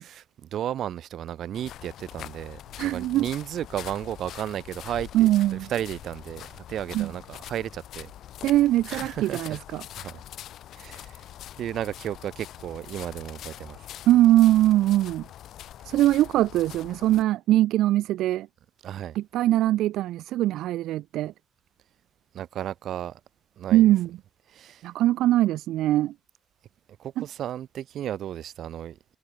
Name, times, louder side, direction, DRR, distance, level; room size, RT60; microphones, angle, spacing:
voice 1, 0.0-8.1 8.9-9.6 10.0-10.2 10.7-11.2 11.6-13.9 18.8-19.2 22.3-23.2 23.6-23.9 24.5-24.9 27.0-29.0, right 11 dB, 70° right, 5.9 m, -34 dB
sound 1, 1.5-17.2, left 12 dB, 75° left, 7.5 m, -43 dB
voice 2, 2.8-3.3 5.1-5.7 6.9-7.1 8.4-9.8 14.1-15.3 15.9-18.5 19.2-21.3 23.7-24.1 24.8-26.1 27.2-27.3, right 14 dB, 85° right, 1.8 m, -22 dB
cardioid pair, 90°, 0 cm